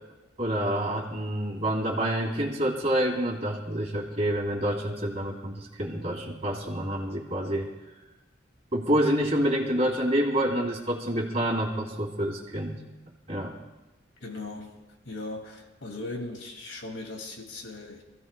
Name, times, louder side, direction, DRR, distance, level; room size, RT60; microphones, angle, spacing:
voice 1, 0.4-7.7 8.7-12.7 13.3-13.5, right 1 dB, 35° right, -4 dB, 2.5 m, -27 dB
voice 2, 14.2-14.8 15.0-18.0, left 2 dB, 80° left, 2 dB, 2.3 m, -38 dB
27.5 x 15.0 x 2.2 m, 1.1 s
head